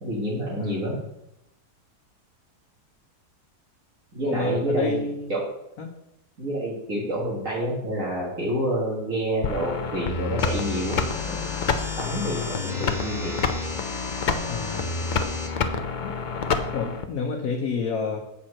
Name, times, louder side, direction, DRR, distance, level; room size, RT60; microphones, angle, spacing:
voice 1, 0.0-1.0 4.1-5.0 5.3-5.4 6.4-13.4, right 1 dB, 55° right, -6 dB, 2.1 m, -28 dB
voice 2, 0.6-1.1 4.2-5.3 5.8-5.9 14.5-14.9 16.0-16.1 16.7-18.2, left 5 dB, 65° left, 1 dB, 1.3 m, -29 dB
sound 1, 9.4-17.1, left 5 dB, 90° left, 0.4 m, -28 dB
sound 2, 10.4-15.5, left 1 dB, ahead, 1.1 m, -38 dB
8.5 x 4.4 x 6.3 m, 0.84 s
omnidirectional pair, 1.7 m